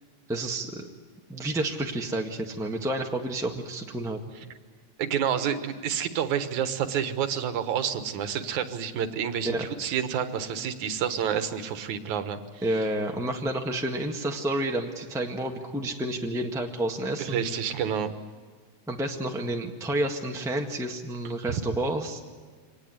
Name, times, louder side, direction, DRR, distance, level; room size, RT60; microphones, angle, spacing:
voice 1, 0.3-0.9 1.3-4.2 9.4-9.6 12.6-17.4 18.9-22.2, right 1 dB, ahead, 2 dB, 0.7 m, -30 dB
voice 2, 5.0-12.6 17.2-18.1 21.5-21.6, right 8 dB, 75° right, 10 dB, 2.8 m, -29 dB
25.0 x 19.5 x 9.6 m, 1.5 s
omnidirectional pair, 3.5 m